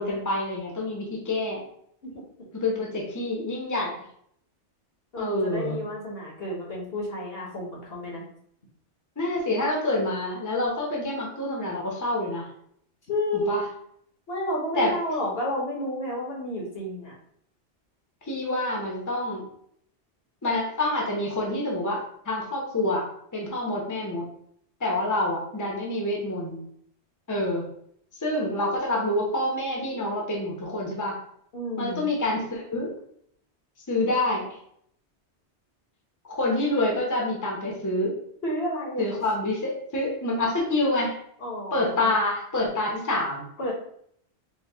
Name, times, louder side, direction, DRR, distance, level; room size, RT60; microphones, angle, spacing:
voice 1, 0.0-1.6 2.5-3.9 5.2-5.8 9.2-12.5 13.3-13.6 14.8-14.9 18.3-19.5 20.4-23.1 23.3-24.2 24.8-26.6 27.3-27.6 28.2-31.2 31.8-32.9 33.9-34.5 36.3-38.2 39.0-41.2 41.7-43.4, left 1 dB, 20° left, -2 dB, 0.8 m, -27 dB
voice 2, 5.1-8.2 13.1-13.6 14.3-17.1 31.5-32.1 38.4-39.1 41.4-42.1 43.6-43.7, equal, 60° left, -3 dB, 1.3 m, -31 dB
4.5 x 2.3 x 3.4 m, 0.68 s
omnidirectional pair, 1.2 m